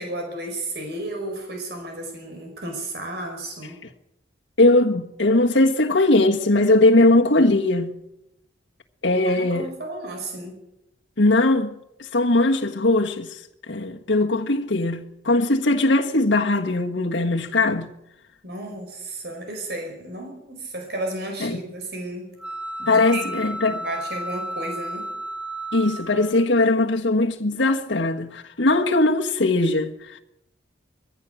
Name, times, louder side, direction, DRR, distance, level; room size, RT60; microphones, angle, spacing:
voice 1, 0.0-3.8 9.1-10.6 18.4-22.3 22.8-25.1, right 2 dB, 60° right, 5.0 m, -33 dB
voice 2, 4.6-8.0 9.0-9.7 11.2-17.9 21.4-21.6 22.9-23.8 25.7-30.2, left 2 dB, 75° left, 1.5 m, -20 dB
sound 1, 22.4-26.5, right 1 dB, 5° right, 0.7 m, -33 dB
22.0 x 15.0 x 7.8 m
head